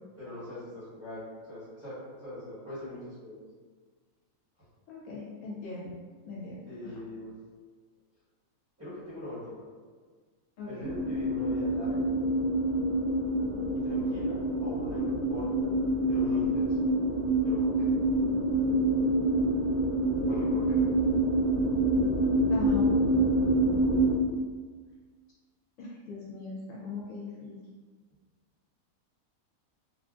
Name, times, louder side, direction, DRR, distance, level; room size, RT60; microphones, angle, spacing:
voice 1, 0.2-3.4 6.7-7.3 8.8-9.6 10.7-12.1 13.8-15.7 16.1-16.7 17.4-17.9 20.2-20.8, left 1 dB, 10° right, -13 dB, 1.2 m, -41 dB
voice 2, 4.9-6.0 6.2-7.0 10.6-10.9 22.5-23.1 25.8-27.5, left 4 dB, 70° left, -6 dB, 1.0 m, -39 dB
sound 1, 10.8-24.1, right 1 dB, 65° right, 0.9 m, -26 dB
3.3 x 2.4 x 2.4 m, 1.5 s
omnidirectional pair, 1.5 m